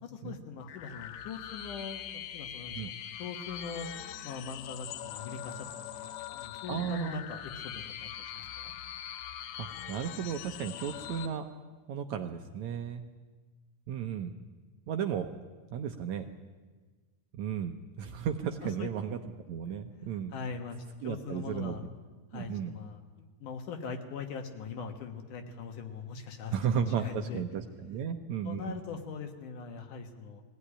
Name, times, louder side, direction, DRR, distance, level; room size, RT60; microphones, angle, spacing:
voice 1, 0.0-3.9 4.2-5.7 5.9-8.7 18.6-18.9 20.3-21.8 22.3-26.5 26.8-27.4 28.4-30.4, left 5 dB, 65° left, 5 dB, 2.9 m, -41 dB
sound 1, 0.6-11.3, left 11 dB, 90° left, 2.7 m, -42 dB
voice 2, 6.7-7.2 9.6-11.5 11.9-13.0 13.9-14.3 14.9-15.3 15.7-16.3 17.3-19.2 19.5-20.3 21.0-21.8 22.3-22.8 26.5-28.8, right 8 dB, 70° right, 6 dB, 1.9 m, -34 dB
21.0 x 16.5 x 9.9 m, 1.3 s
omnidirectional pair, 4.0 m